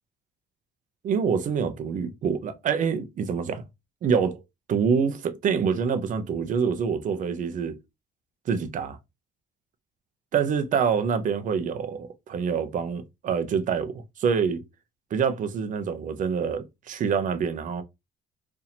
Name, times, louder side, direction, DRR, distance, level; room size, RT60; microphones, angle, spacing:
voice 1, 1.0-3.6 4.0-4.4 4.7-7.8 8.5-9.0 10.3-14.6 15.1-17.8, right 6 dB, 50° right, 0.7 m, -26 dB
4.2 x 2.7 x 2.8 m
cardioid pair, 110°, 17 cm